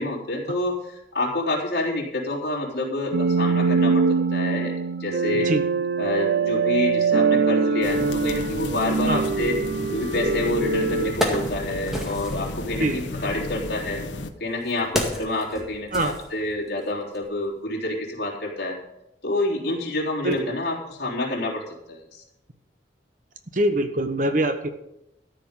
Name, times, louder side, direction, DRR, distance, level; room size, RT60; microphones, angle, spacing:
voice 1, 0.0-4.7 5.0-5.5 6.0-9.6 9.9-14.0 14.4-18.8 19.2-22.2, left 2 dB, 60° left, -4 dB, 3.7 m, -28 dB
sound 1, 3.1-12.1, right 5 dB, 65° right, 0.4 m, -23 dB
sound 2, 7.8-14.3, left 2 dB, 80° left, 1.1 m, -33 dB
Wood, 10.4-10.5 10.9-12.5 13.5-16.8 17.1-17.3, left 1 dB, ahead, 1.9 m, -31 dB
voice 2, 23.5-24.7, right 1 dB, 45° right, 8 dB, 1.1 m, -23 dB
14.0 x 5.3 x 9.0 m, 0.85 s
head